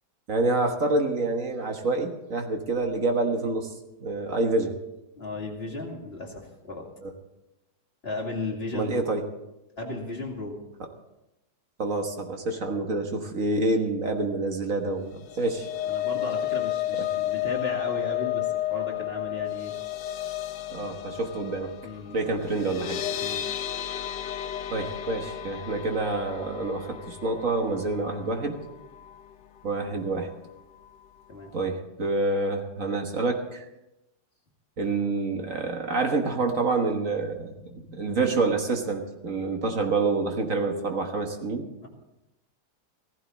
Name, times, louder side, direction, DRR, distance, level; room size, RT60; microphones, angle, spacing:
voice 1, 0.3-3.7 4.0-4.8 7.0-7.1 8.7-9.2 11.8-15.7 17.0-17.1 20.7-21.7 22.1-23.0 24.7-28.6 29.6-30.3 31.5-33.7 34.8-41.7, right 3 dB, 50° right, 4 dB, 1.7 m, -27 dB
voice 2, 5.2-6.9 8.0-9.1 9.8-10.6 15.1-15.2 15.9-19.7 20.8-21.0 21.8-22.4 23.1-23.4 31.3-31.5 41.8-41.9, left 2 dB, 35° left, -1 dB, 2.7 m, -35 dB
sound 1, 15.1-29.3 29.7-29.9 30.2-30.3, left 13 dB, 85° left, 1.4 m, -32 dB
15.5 x 15.5 x 4.2 m, 0.92 s
omnidirectional pair, 1.9 m